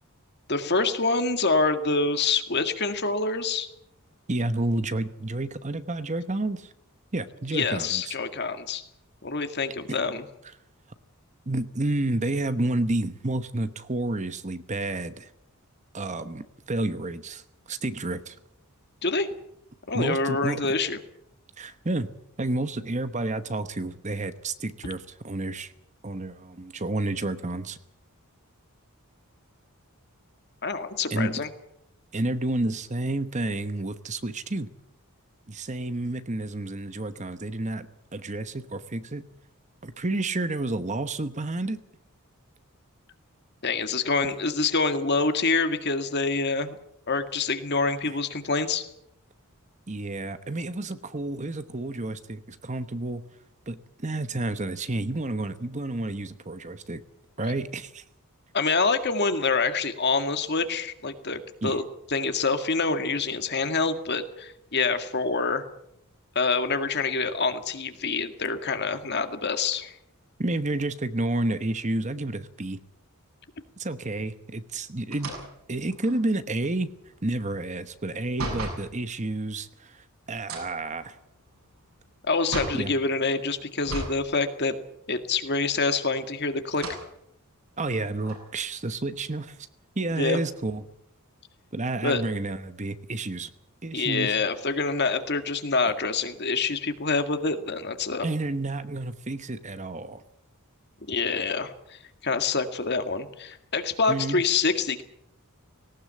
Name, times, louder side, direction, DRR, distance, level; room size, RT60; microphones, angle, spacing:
voice 1, 0.5-3.7 7.5-8.8 9.2-10.2 19.0-19.3 19.9-21.0 30.6-31.5 43.6-46.8 47.1-48.8 58.5-61.8 62.1-65.6 66.4-69.9 82.3-84.8 85.1-86.8 90.2-90.4 92.0-92.2 93.9-98.3 101.1-105.0, left 4 dB, 50° left, 8 dB, 2.0 m, -26 dB
voice 2, 4.3-6.7 7.1-8.2 9.9-10.0 11.5-15.3 15.9-18.4 19.9-20.8 21.6-22.1 22.4-25.7 26.0-27.8 31.1-31.4 32.1-34.7 35.5-39.2 39.8-41.8 44.2-44.3 48.1-48.2 49.9-53.2 53.7-57.0 57.4-58.0 61.6-61.8 70.4-72.8 73.8-75.3 75.7-76.9 77.2-81.2 82.8-82.9 87.8-89.7 90.0-90.8 91.7-93.5 93.8-94.4 98.2-100.2 104.1-104.4, right 2 dB, 30° right, 12 dB, 1.0 m, -30 dB
sound 1, 75.1-78.9 80.4-82.9 83.8-84.3 84.6-84.7 85.8-86.3 86.7-87.1 87.7-87.8 88.2-89.6, right 2 dB, 70° right, 7.2 m, -37 dB
18.5 x 18.5 x 8.4 m, 0.76 s
head